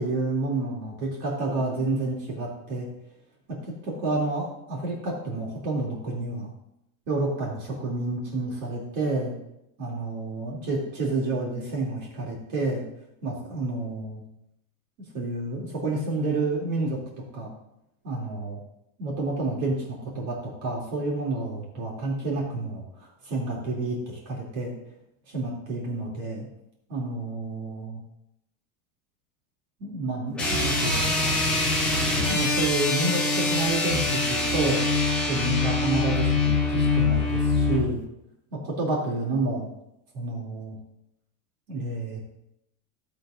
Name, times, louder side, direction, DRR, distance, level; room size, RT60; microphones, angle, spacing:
voice 1, 0.0-2.9 3.6-6.5 7.1-9.3 9.8-12.8 13.2-14.2 15.1-17.0 17.3-17.5 18.0-18.6 19.0-24.7 25.3-26.5 26.9-28.0 29.8-31.4 32.2-34.8 35.2-38.0 38.5-39.7 40.1-40.8 41.7-42.2, right 2 dB, 45° right, -3 dB, 2.8 m, -29 dB
sound 1, 30.3-37.9, left 3 dB, ahead, 1.9 m, -24 dB
17.0 x 7.9 x 2.5 m, 0.81 s
supercardioid pair, 165°, 47 cm